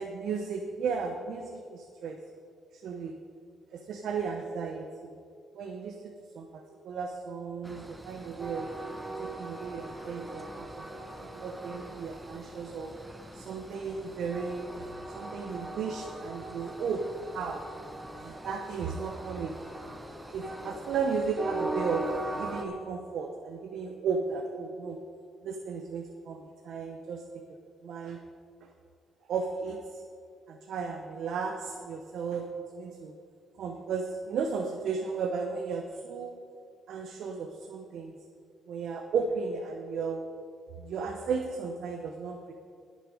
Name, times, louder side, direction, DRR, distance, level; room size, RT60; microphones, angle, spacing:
voice 1, 0.0-2.2 2.7-3.2 3.7-5.1 5.5-8.7 9.2-10.9 11.2-12.9 13.3-14.7 15.1-17.0 17.3-17.6 18.1-19.5 20.3-25.0 25.4-27.4 27.8-28.2 28.6-28.7 29.3-30.0 30.5-32.5 32.8-33.2 33.6-36.4 36.9-38.1 38.7-40.2 40.8-42.5, right 5 dB, 70° right, 3 dB, 0.9 m, -34 dB
Train, 7.6-22.7, right 2 dB, 10° right, 1.1 m, -40 dB
19.5 x 6.7 x 4.9 m, 2.3 s
cardioid pair, 90°, 0 cm